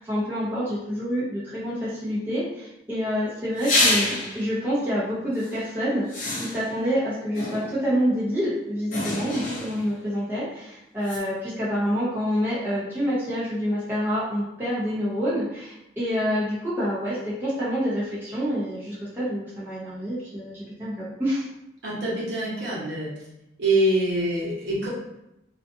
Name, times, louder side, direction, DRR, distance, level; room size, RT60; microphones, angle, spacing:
voice 1, 0.0-6.1 6.4-21.5, equal, 10° right, -10 dB, 0.7 m, -27 dB
sound 1, 3.6-4.5 5.4-5.5 6.1-6.8 7.4-7.9 8.9-10.0 11.1-11.2, left 2 dB, 50° left, 0.5 m, -27 dB
voice 2, 21.8-23.1 23.6-24.9, right 1 dB, 70° right, -7 dB, 0.9 m, -24 dB
2.5 x 2.4 x 2.5 m, 0.86 s
head